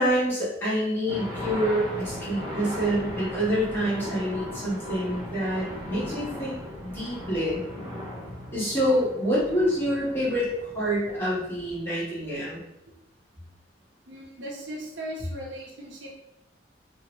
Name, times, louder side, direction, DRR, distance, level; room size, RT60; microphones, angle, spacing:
voice 1, 0.0-6.6 6.8-7.6 8.5-12.6, equal, 10° left, -9 dB, 1.2 m, -27 dB
sound 1, 1.1-11.8, left 1 dB, 25° right, 1.2 m, -37 dB
voice 2, 14.1-16.1, equal, 90° right, -2 dB, 0.8 m, -38 dB
2.8 x 2.7 x 3.0 m, 0.85 s
head